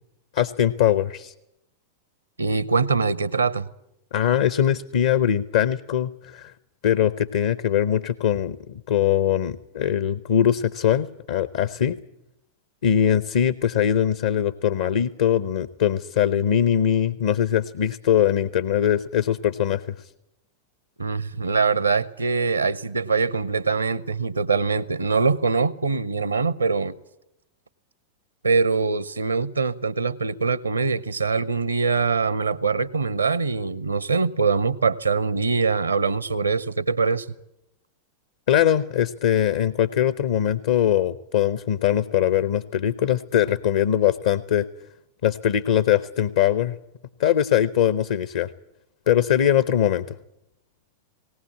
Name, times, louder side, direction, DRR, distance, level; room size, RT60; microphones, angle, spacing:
voice 1, 0.3-1.3 4.1-6.5 6.8-12.0 12.8-19.9 38.5-44.7 45.2-46.8 47.2-48.5 49.1-50.1, left 10 dB, 60° left, 0.7 m, -21 dB
voice 2, 2.4-3.7 21.0-26.9 28.4-37.3, right 4 dB, 80° right, 0.8 m, -23 dB
19.0 x 19.0 x 9.9 m
figure-of-eight pair, 90°, 0 cm